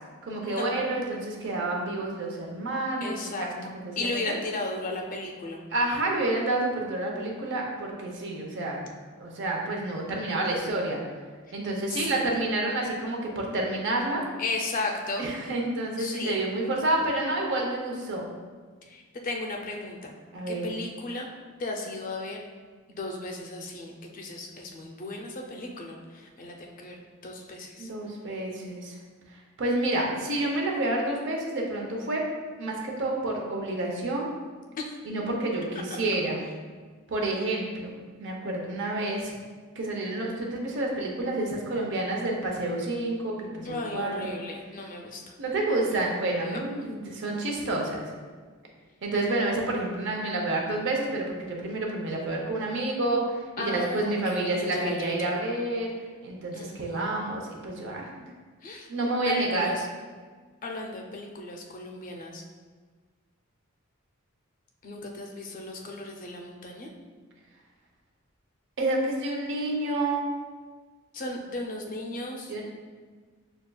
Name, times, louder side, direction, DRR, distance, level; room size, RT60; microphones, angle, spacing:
voice 1, 0.2-4.4 5.7-8.8 9.2-11.0 11.5-14.2 15.2-18.3 20.3-20.6 27.8-29.0 29.6-32.2 32.6-34.3 35.0-36.4 37.1-39.3 39.8-44.4 45.4-48.0 49.0-55.9 56.2-58.3 58.9-59.7 68.8-70.2 72.5-72.6, right 2 dB, 60° right, 0 dB, 0.7 m, -29 dB
voice 2, 3.0-3.5 4.0-5.6 11.9-12.3 14.4-15.3 16.0-16.4 18.8-20.1 20.5-21.3 21.6-22.4 22.9-27.9 34.8-35.0 43.6-45.3 46.4-46.6 53.6-55.3 56.5-57.2 58.6-58.9 59.2-59.9 60.6-62.4 64.8-66.9 71.1-72.6, left 2 dB, 40° left, 1 dB, 0.4 m, -35 dB
6.4 x 2.3 x 2.2 m, 1.5 s
head